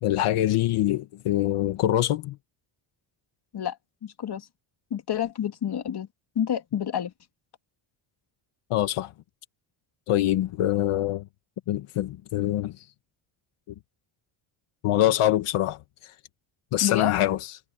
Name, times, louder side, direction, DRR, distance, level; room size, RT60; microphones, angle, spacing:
voice 1, 0.0-2.4 8.7-9.1 10.1-11.2 11.7-12.7 14.8-15.8 16.7-17.4, left 13 dB, 85° left, 1.9 m, -24 dB
voice 2, 4.0-4.5 4.9-6.1 6.3-7.1 16.8-17.1, left 10 dB, 50° left, 2.7 m, -28 dB
cardioid pair, 115°, 50 cm